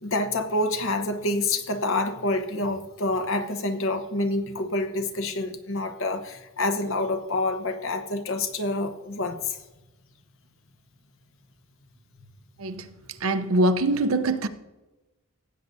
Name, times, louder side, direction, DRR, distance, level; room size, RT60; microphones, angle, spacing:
voice 1, 0.0-9.6, left 2 dB, 65° left, 1.0 m, -27 dB
voice 2, 13.2-14.5, right 2 dB, 75° right, 0.7 m, -23 dB
15.5 x 8.2 x 2.7 m
head